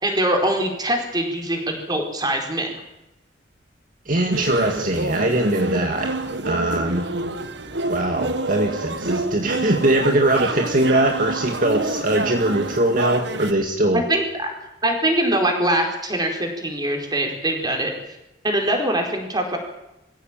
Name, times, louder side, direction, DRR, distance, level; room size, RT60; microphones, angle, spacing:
voice 1, 0.0-2.7 13.9-14.5 14.8-17.9 18.4-19.6, right 1 dB, 20° right, 3 dB, 4.6 m, -23 dB
voice 2, 4.1-6.1 6.5-7.1 7.9-14.1, right 1 dB, 50° right, 3 dB, 2.2 m, -21 dB
sound 1, 4.3-13.5, right 2 dB, 70° right, 1.7 m, -27 dB
23.0 x 16.0 x 9.1 m, 0.92 s
head